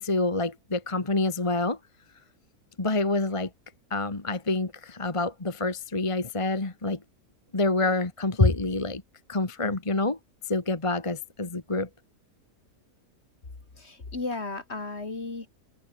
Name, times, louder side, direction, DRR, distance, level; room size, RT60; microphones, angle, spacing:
voice 1, 0.0-1.8 2.8-3.5 3.9-7.0 7.5-9.0 9.3-10.2 10.5-11.9, left 2 dB, 20° left, 1.6 m, -27 dB
voice 2, 13.7-15.5, left 3 dB, 45° left, 2.9 m, -34 dB
omnidirectional pair, 1.6 m